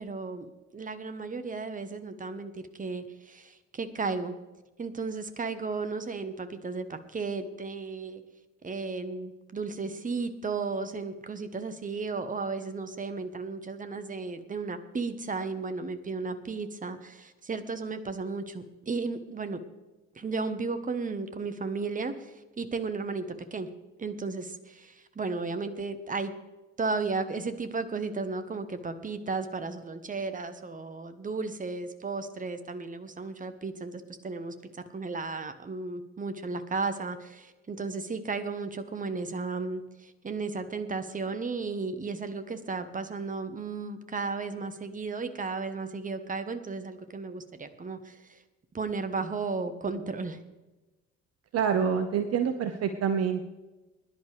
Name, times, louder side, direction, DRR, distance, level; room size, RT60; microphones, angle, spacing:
voice 1, 0.0-4.3 4.8-8.2 8.6-19.6 20.1-23.7 24.0-26.3 26.8-48.4 48.7-50.4, right 4 dB, 20° right, 10 dB, 1.3 m, -34 dB
voice 2, 51.5-53.5, right 7 dB, 45° right, 9 dB, 0.9 m, -27 dB
21.5 x 11.0 x 3.4 m, 1.1 s
figure-of-eight pair, 50°, 36 cm